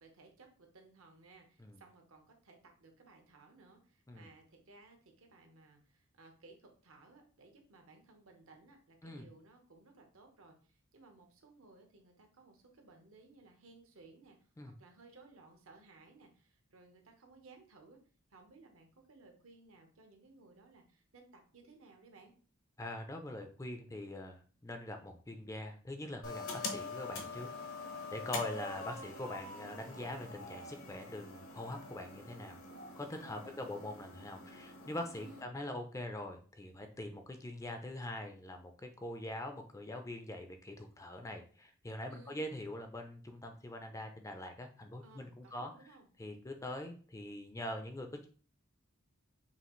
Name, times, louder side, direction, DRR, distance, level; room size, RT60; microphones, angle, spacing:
voice 1, 0.0-18.0 18.3-22.3 33.2-33.8 35.1-35.5 42.1-42.5 45.0-46.1, right 3 dB, 75° right, 4 dB, 0.9 m, -60 dB
voice 2, 22.8-27.5 28.1-32.6 33.0-45.7 46.2-48.3, left 1 dB, 15° left, 5 dB, 0.4 m, -43 dB
sound 1, 26.2-35.4, left 3 dB, 70° left, 0.8 m, -45 dB
5.6 x 2.4 x 3.0 m, 0.41 s
head